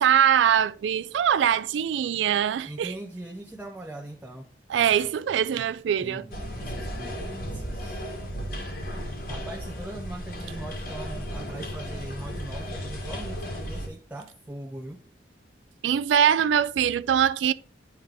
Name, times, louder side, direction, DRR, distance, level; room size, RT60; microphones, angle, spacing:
voice 1, 0.0-2.9 4.7-6.2 15.8-17.5, right 9 dB, 90° right, 0.3 m, -22 dB
voice 2, 2.7-4.5 6.0-8.0 9.3-15.0, right 1 dB, 10° right, 0.5 m, -40 dB
sound 1, 6.3-13.9, equal, 55° left, 1.7 m, -35 dB
10.5 x 3.5 x 3.3 m
head